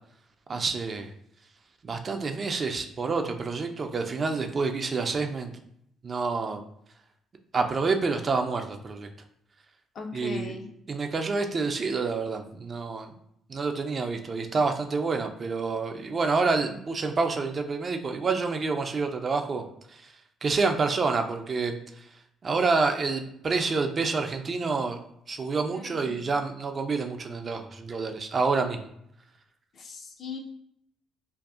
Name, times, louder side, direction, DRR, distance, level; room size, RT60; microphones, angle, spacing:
voice 1, 0.5-1.1 1.8-5.5 6.0-6.6 7.5-9.1 10.1-10.6 10.9-13.1 13.5-19.6 19.9-20.0 20.4-21.8 22.4-25.0 25.3-28.9, right 4 dB, 45° right, 5 dB, 0.3 m, -28 dB
voice 2, 9.9-10.7 25.7-26.3 29.7-30.4, left 4 dB, 55° left, 3 dB, 0.5 m, -39 dB
2.6 x 2.3 x 2.4 m, 0.72 s
supercardioid pair, 65°, 0 cm